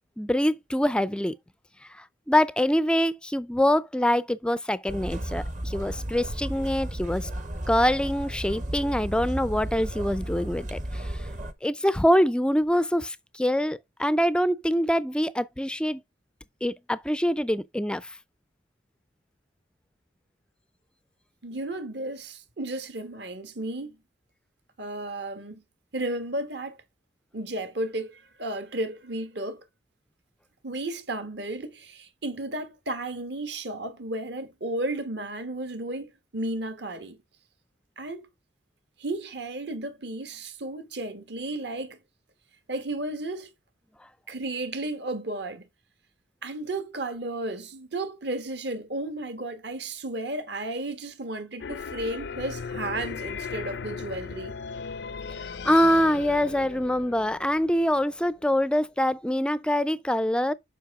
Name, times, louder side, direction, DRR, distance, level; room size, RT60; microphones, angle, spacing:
voice 1, 0.2-1.4 2.0-7.3 7.7-11.3 11.6-16.0 16.6-18.1 55.6-60.5, equal, 5° left, 0.4 m, -24 dB
sound 1, 4.9-11.5, right 1 dB, 40° right, 0.9 m, -34 dB
voice 2, 21.4-24.0 24.8-25.6 25.9-26.8 27.3-29.6 30.6-37.2 38.0-38.3 39.0-42.0 42.7-43.5 44.3-45.7 46.4-54.6, right 2 dB, 60° right, 1.3 m, -33 dB
sound 2, 51.6-58.4, left 5 dB, 65° left, 0.5 m, -37 dB
7.4 x 5.5 x 3.5 m
head